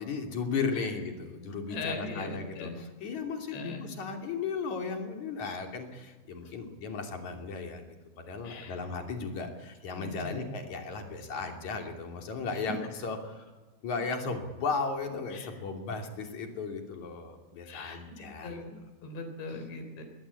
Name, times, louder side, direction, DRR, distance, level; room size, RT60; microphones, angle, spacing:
voice 1, 0.0-7.8 8.2-13.5 13.8-18.6, left 4 dB, 45° left, 3 dB, 3.9 m, -35 dB
voice 2, 1.7-2.9 3.5-4.0 6.4-6.5 8.4-8.8 9.9-10.4 12.5-12.7 15.3-15.5 17.7-20.1, left 3 dB, 85° left, 7 dB, 5.7 m, -40 dB
22.0 x 18.5 x 8.6 m, 1.2 s
omnidirectional pair, 4.9 m